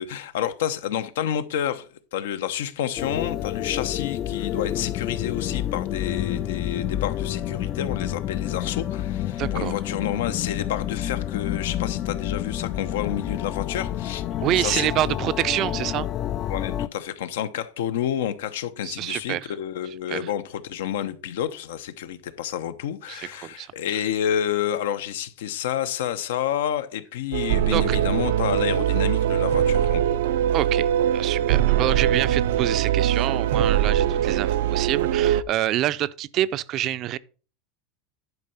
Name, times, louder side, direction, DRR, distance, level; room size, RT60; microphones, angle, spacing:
voice 1, 0.0-14.2 14.6-15.1 16.5-30.2, left 10 dB, 85° left, 0.9 m, -29 dB
sound 1, 3.0-16.9, left 12 dB, 35° left, 0.3 m, -29 dB
voice 2, 9.4-9.7 14.4-16.1 18.8-19.5 20.1-20.3 23.1-23.7 27.7-28.0 30.5-37.2, right 13 dB, 40° right, 0.4 m, -27 dB
sound 2, 27.3-35.4, right 10 dB, 90° right, 0.5 m, -22 dB
11.0 x 4.7 x 5.5 m
supercardioid pair, 150°, 0 cm